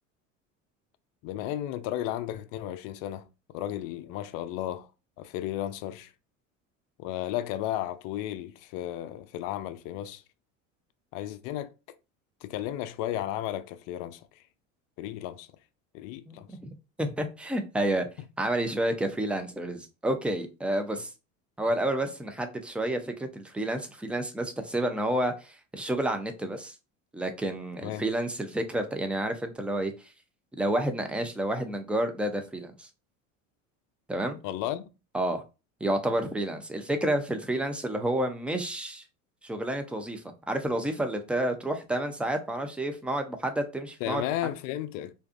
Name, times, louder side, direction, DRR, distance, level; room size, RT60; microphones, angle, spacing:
voice 1, 1.2-4.9 5.2-6.1 7.0-10.2 11.1-11.7 12.4-14.4 15.0-15.5 15.9-16.5 27.8-28.1 34.4-34.8 44.0-45.1, left 13 dB, 60° left, 0.5 m, -34 dB
voice 2, 16.3-16.6 17.0-18.1 18.4-21.1 21.6-26.8 27.1-30.1 30.6-32.9 34.1-34.4 35.1-35.4 35.8-39.0 39.4-44.2, right 1 dB, 5° right, 0.4 m, -30 dB
2.6 x 2.3 x 2.4 m
hypercardioid pair, 80°, 38 cm